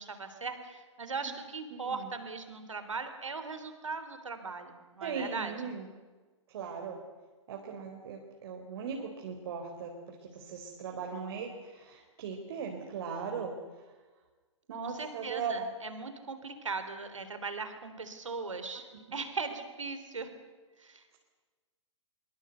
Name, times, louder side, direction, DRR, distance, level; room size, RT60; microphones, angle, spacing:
voice 1, 0.0-5.5 14.8-20.3 20.8-21.0, right 4 dB, 80° right, 8 dB, 3.7 m, -39 dB
voice 2, 1.7-2.1 5.0-5.9 6.5-7.0 7.5-13.5 14.7-15.5, right 6 dB, 55° right, 2 dB, 4.2 m, -39 dB
24.5 x 24.0 x 8.2 m, 1.3 s
figure-of-eight pair, 120°, 16 cm